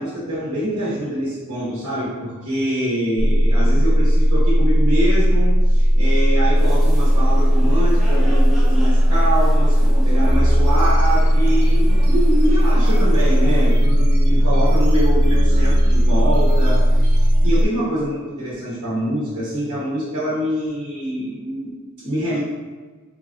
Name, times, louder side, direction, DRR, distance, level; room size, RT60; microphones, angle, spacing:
voice 1, 0.0-22.4, equal, 75° right, -9 dB, 1.0 m, -25 dB
sound 1, 3.2-17.7, equal, 35° left, 0.5 m, -16 dB
sound 2, 6.5-13.7, equal, ahead, 0.7 m, -35 dB
sound 3, 10.2-17.6, equal, 45° right, 0.4 m, -30 dB
3.2 x 2.4 x 3.6 m, 1.4 s
head